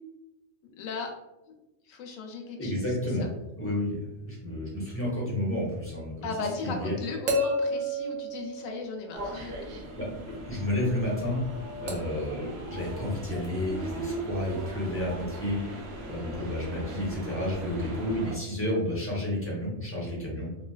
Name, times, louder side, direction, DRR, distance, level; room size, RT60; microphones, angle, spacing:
voice 1, 0.8-1.1 1.9-2.8 3.2-3.3 6.2-9.6 16.2-16.5, left 4 dB, 80° left, 2 dB, 1.0 m, -37 dB
voice 2, 2.6-3.3 3.6-6.3 6.6-7.0 10.0-10.1 10.5-11.4 11.8-20.5, left 1 dB, 15° left, -5 dB, 0.7 m, -31 dB
sound 1, 5.9-6.0 7.3-9.3 11.9-12.3 13.4-13.5, equal, 85° right, 1.0 m, -30 dB
sound 2, 9.1-18.4, right 2 dB, 65° right, 0.8 m, -39 dB
3.1 x 2.7 x 2.3 m, 0.98 s
omnidirectional pair, 1.4 m